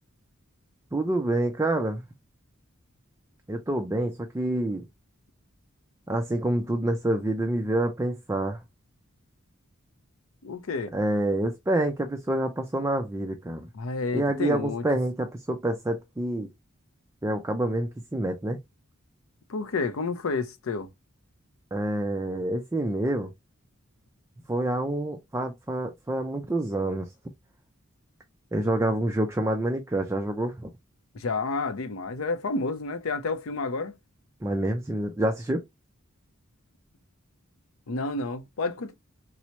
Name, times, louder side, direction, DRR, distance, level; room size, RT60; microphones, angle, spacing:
voice 1, 0.9-2.0 3.5-4.9 6.1-8.6 10.9-13.7 14.1-16.5 17.2-18.6 21.7-23.3 24.5-27.1 28.5-30.7 34.4-35.6, right 1 dB, 15° right, 0.4 m, -27 dB
voice 2, 10.4-10.9 13.7-14.8 19.5-20.9 31.1-33.9 37.9-38.9, left 3 dB, 70° left, 0.5 m, -30 dB
4.4 x 2.0 x 2.7 m
head